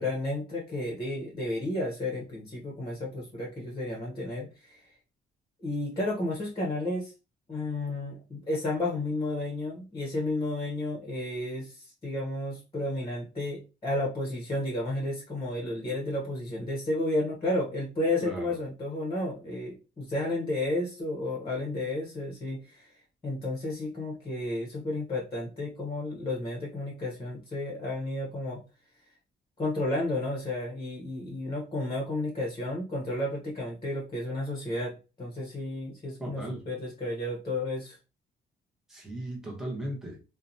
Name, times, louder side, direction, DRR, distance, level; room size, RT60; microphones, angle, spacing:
voice 1, 0.0-4.9 5.6-7.1 7.5-22.9 23.2-28.6 29.6-38.0, left 2 dB, 25° left, 0.8 m, -32 dB
voice 2, 36.2-36.6 38.9-40.2, right 1 dB, ahead, 0.9 m, -36 dB
2.7 x 2.1 x 2.5 m
cardioid pair, 90°, 20 cm